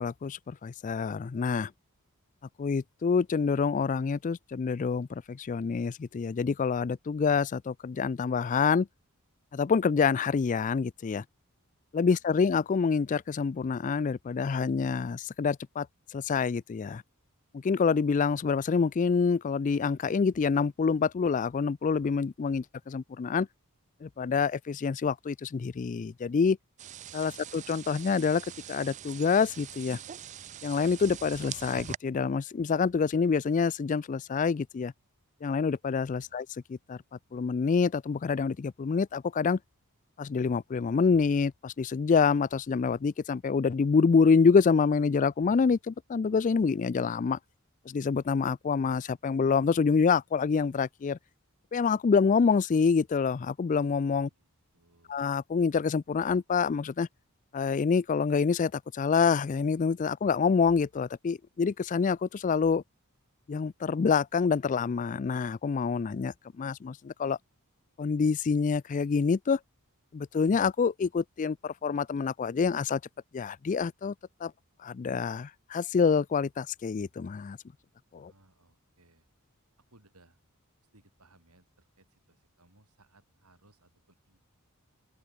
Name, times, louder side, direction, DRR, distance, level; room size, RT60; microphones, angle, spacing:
voice 1, 0.0-1.7 2.6-8.9 9.5-11.2 11.9-15.9 16.1-17.0 17.5-23.5 24.0-26.6 27.1-30.0 30.6-34.9 35.4-37.0 37.3-39.6 40.2-47.4 47.9-51.2 51.7-54.3 55.1-57.1 57.5-62.8 63.5-67.4 68.0-69.6 70.1-73.0 73.3-74.1 74.4-74.5 74.8-77.6 78.1-78.3, left 5 dB, 35° left, 0.3 m, -27 dB
sound 1, 26.8-32.0, right 9 dB, 35° right, 0.4 m, -43 dB
voice 2, 27.2-27.5 36.1-36.4 54.1-54.5 54.7-55.3 78.2-79.2 79.8-80.4 80.9-84.4, right 2 dB, 85° right, 7.1 m, -64 dB
open air
head